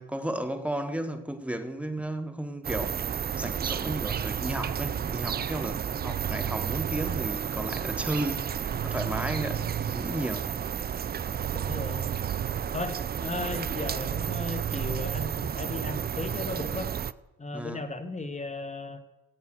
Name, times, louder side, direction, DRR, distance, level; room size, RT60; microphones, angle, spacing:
voice 1, 0.0-8.5 8.8-10.5 17.5-17.8, right 1 dB, 5° right, 1.7 m, -34 dB
sound 1, 2.6-17.1, right 8 dB, 30° right, 0.5 m, -32 dB
sound 2, 6.0-7.3 8.6-10.0 11.3-12.6 14.0-15.3, right 12 dB, 70° right, 0.7 m, -35 dB
voice 2, 11.5-12.1 12.7-17.0 17.4-19.0, left 2 dB, 20° left, 1.7 m, -36 dB
13.5 x 8.2 x 7.7 m
hypercardioid pair, 50°, 31 cm